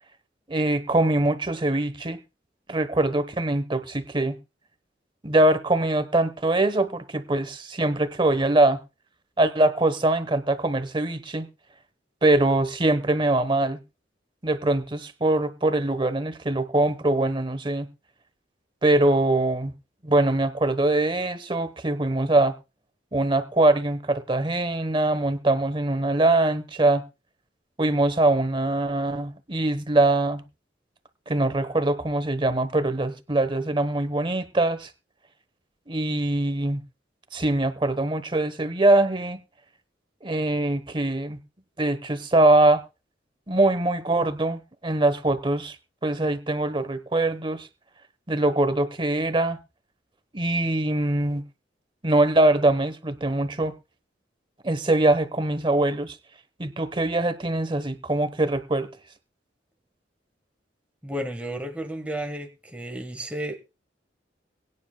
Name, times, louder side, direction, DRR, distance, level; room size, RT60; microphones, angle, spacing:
voice 1, 0.5-2.2 2.7-4.4 5.2-8.8 9.4-11.5 12.2-13.8 14.4-17.9 18.8-19.7 20.0-22.5 23.1-27.0 27.8-30.4 31.3-34.9 35.9-36.8 37.3-39.4 40.2-41.4 41.8-42.8 43.5-45.8 46.0-47.7 48.3-49.6 50.3-51.4 52.0-53.7 54.6-56.2 56.6-58.9, right 2 dB, 25° right, 1.0 m, -23 dB
voice 2, 61.0-63.6, right 1 dB, 5° right, 1.3 m, -32 dB
22.5 x 9.8 x 2.2 m
head